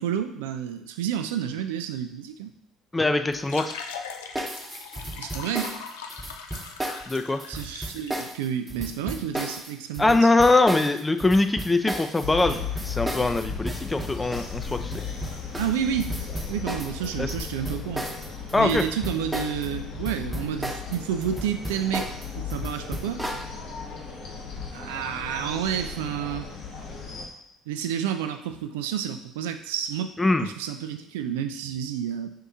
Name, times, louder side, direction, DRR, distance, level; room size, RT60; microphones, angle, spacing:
voice 1, 0.0-2.5 5.2-5.8 7.5-10.3 15.6-16.1 16.5-18.1 18.6-22.1 22.4-23.2 24.7-26.4 27.7-32.3, right 9 dB, 85° right, 8 dB, 0.4 m, -30 dB
voice 2, 2.9-3.8 7.1-7.4 10.0-14.9 17.2-17.3 18.5-18.8 30.2-30.5, left 2 dB, 20° left, 8 dB, 0.5 m, -22 dB
sound 1, 3.3-8.2, left 6 dB, 85° left, 0.4 m, -40 dB
sound 2, 4.3-19.7 19.9-23.5, right 1 dB, 10° right, 0.9 m, -34 dB
sound 3, 12.2-27.3, left 6 dB, 65° left, 1.2 m, -36 dB
5.4 x 2.7 x 3.6 m, 0.82 s
hypercardioid pair, 65°, 0 cm